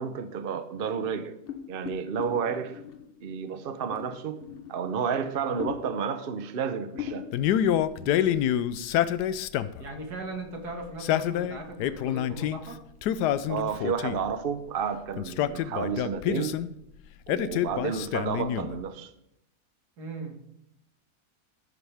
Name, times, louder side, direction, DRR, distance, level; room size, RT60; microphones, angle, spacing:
voice 1, 0.0-1.3 1.7-2.8 3.2-4.4 4.7-7.3 13.5-16.6 17.3-19.1, right 6 dB, 45° right, 0.8 m, -31 dB
sound 1, 1.4-3.2 3.9-5.0 5.6-6.2 6.7-6.8 6.9-7.6 8.0-8.3, left 9 dB, 45° left, 0.9 m, -40 dB
Male speech man speaking, 7.3-9.9 10.8-12.6 13.0-14.3 15.2-16.7 17.3-18.8, left 11 dB, 85° left, 1.2 m, -27 dB
voice 2, 8.0-8.4 9.8-12.8 20.0-20.4, right 2 dB, 75° right, 2.4 m, -38 dB
14.0 x 11.0 x 3.5 m
omnidirectional pair, 1.7 m